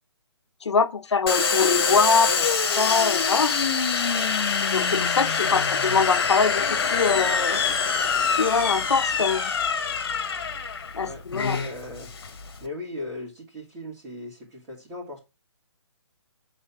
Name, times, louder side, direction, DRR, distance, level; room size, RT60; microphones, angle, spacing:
voice 1, 0.6-2.3 2.8-3.5 4.6-7.6 8.3-9.5 10.9-11.6, left 5 dB, 65° left, 1.1 m, -23 dB
Domestic sounds home sounds, 1.3-12.6, left 5 dB, 50° left, 2.0 m, -25 dB
voice 2, 11.0-12.1 12.6-15.2, left 2 dB, 15° right, 3.1 m, -38 dB
9.6 x 4.3 x 7.3 m
hypercardioid pair, 170°, 15 cm